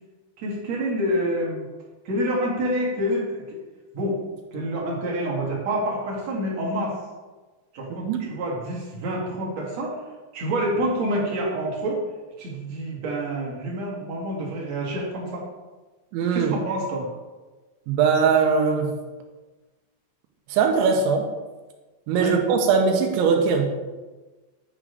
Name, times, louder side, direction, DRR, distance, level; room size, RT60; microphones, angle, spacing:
voice 1, 0.4-1.6 2.0-3.6 3.9-4.2 4.5-7.0 7.7-10.0 10.3-12.0 12.4-15.4 16.3-17.1 22.2-22.4, right 1 dB, 50° right, -4 dB, 2.3 m, -27 dB
voice 2, 16.1-16.5 17.9-18.9 20.5-21.3 22.1-23.7, right 5 dB, 80° right, 3 dB, 3.3 m, -20 dB
9.7 x 3.7 x 6.6 m, 1.2 s
omnidirectional pair, 5.4 m